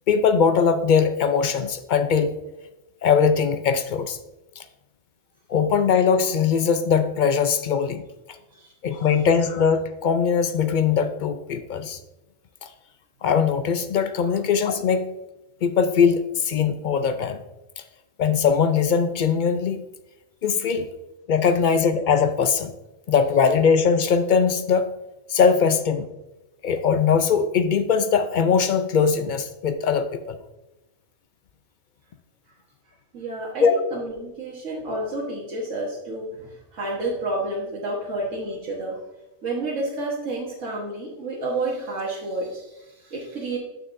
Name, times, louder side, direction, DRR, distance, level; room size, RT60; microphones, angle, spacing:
voice 1, 0.1-2.3 3.0-4.2 4.6-4.7 5.5-8.0 8.8-12.0 12.6-12.7 13.2-15.1 15.6-17.4 18.2-19.8 20.4-20.9 21.3-22.7 23.1-24.9 25.3-26.1 26.6-30.4 33.6-33.7, left 6 dB, 60° left, 9 dB, 0.5 m, -21 dB
voice 2, 33.1-39.0 39.4-43.6, right 2 dB, 85° right, -4 dB, 1.5 m, -30 dB
9.2 x 6.4 x 2.6 m, 0.98 s
omnidirectional pair, 1.2 m